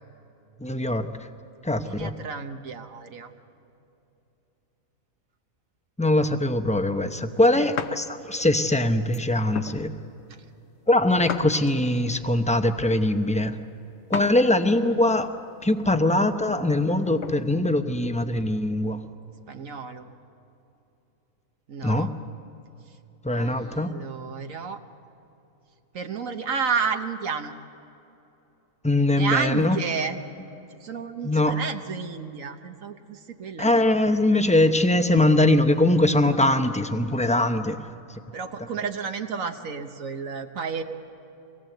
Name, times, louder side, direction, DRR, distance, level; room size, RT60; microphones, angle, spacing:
voice 1, 0.6-1.1 1.6-2.1 6.0-9.9 10.9-13.6 14.1-15.3 15.6-19.0 21.8-22.1 23.2-23.9 28.8-29.8 31.2-31.6 33.6-37.8, left 1 dB, 5° left, 8 dB, 0.6 m, -22 dB
voice 2, 1.8-3.3 7.5-7.7 19.5-20.1 21.7-22.1 23.3-24.8 25.9-27.5 29.1-30.2 30.8-33.9 34.2-34.4 36.3-36.9 38.3-40.8, right 6 dB, 70° right, 6 dB, 1.4 m, -31 dB
sound 1, 7.8-8.0 8.6-8.8 9.5-9.8 11.3-12.0 14.1-14.4 14.9-15.0 16.7-17.4, left 7 dB, 55° left, 1.0 m, -34 dB
25.0 x 18.5 x 7.8 m, 3.0 s
omnidirectional pair, 1.5 m